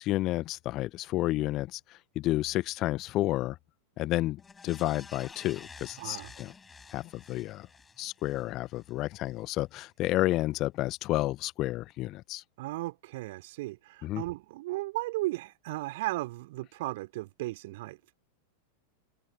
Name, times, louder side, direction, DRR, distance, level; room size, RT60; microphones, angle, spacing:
voice 1, 0.0-1.8 2.1-3.5 4.0-6.5 6.9-7.7 8.0-12.4 14.0-14.2, left 16 dB, 35° left, 1.1 m, -31 dB
sound 1, 4.4-8.9 9.3-9.4, left 5 dB, 15° left, 5.9 m, -51 dB
voice 2, 6.0-6.3 12.6-18.0, right 19 dB, 50° right, 3.5 m, -35 dB
figure-of-eight pair, 90°, 0 cm